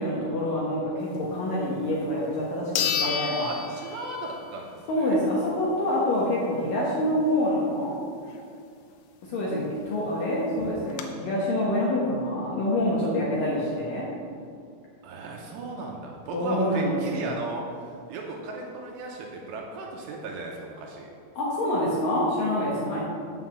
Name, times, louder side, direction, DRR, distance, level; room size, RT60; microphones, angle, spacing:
voice 1, 0.0-2.7 3.0-3.4 4.9-7.9 9.3-14.1 16.3-17.4 21.4-23.0, left 1 dB, 65° left, -6 dB, 2.2 m, -26 dB
sound 1, 1.9-2.0 2.8-4.5 4.9-5.0 9.6-9.7 9.9-10.0 10.6-11.0, left 8 dB, 85° left, 3.1 m, -30 dB
voice 2, 3.4-5.2 15.0-21.1 22.9-23.0, right 2 dB, 75° right, 0 dB, 2.7 m, -36 dB
7.8 x 5.7 x 7.5 m, 2.3 s
omnidirectional pair, 5.5 m